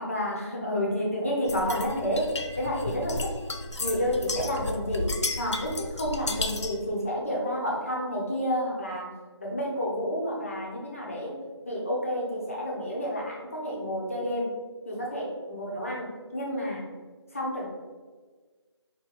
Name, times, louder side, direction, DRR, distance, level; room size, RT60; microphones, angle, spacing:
voice 1, 0.0-3.3 3.8-5.1 5.4-9.1 9.4-11.4 11.7-14.5 14.8-16.9 17.3-17.7, equal, 30° left, -3 dB, 0.8 m, -30 dB
sound 1, 1.5-6.8, left 2 dB, 85° left, 0.5 m, -33 dB
4.3 x 2.7 x 3.7 m, 1.4 s
figure-of-eight pair, 175°, 15 cm